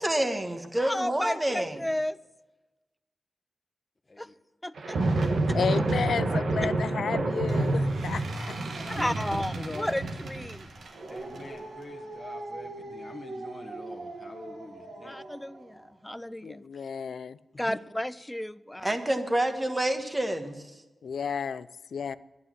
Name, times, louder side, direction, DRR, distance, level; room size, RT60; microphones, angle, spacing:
voice 1, 0.0-1.8 18.8-20.6, right 1 dB, 20° right, 6 dB, 1.4 m, -28 dB
voice 2, 0.8-2.2 4.2-4.3 4.6-5.6 6.6-6.7 9.0-10.7 15.0-16.6 17.6-19.0, left 1 dB, 10° left, 17 dB, 0.4 m, -33 dB
sound 1, 4.8-15.3, right 2 dB, 80° right, 1.4 m, -30 dB
voice 3, 5.5-8.5 16.4-17.4 21.0-22.1, left 6 dB, 80° left, 16 dB, 0.4 m, -32 dB
voice 4, 8.6-10.0 11.1-15.2 17.5-17.8, left 2 dB, 30° left, 2 dB, 1.1 m, -44 dB
11.0 x 9.5 x 7.5 m, 1.1 s
cardioid pair, 65°, 0 cm